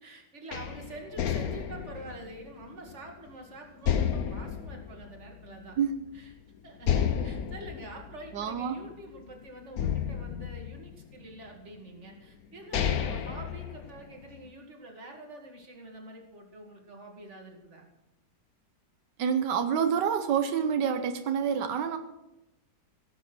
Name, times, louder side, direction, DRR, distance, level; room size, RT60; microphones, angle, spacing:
voice 1, 0.0-5.8 6.1-6.3 6.6-17.9, right 1 dB, 40° right, 2 dB, 2.5 m, -46 dB
sound 1, 0.5-3.3 3.8-5.8 6.1-6.2 6.8-9.2 9.8-11.3 12.1-12.2 12.5-14.3, left 8 dB, 60° left, 1.4 m, -32 dB
voice 2, 8.3-8.8 19.2-22.0, right 7 dB, 90° right, 7 dB, 1.6 m, -27 dB
16.5 x 8.5 x 6.2 m, 0.92 s
omnidirectional pair, 1.8 m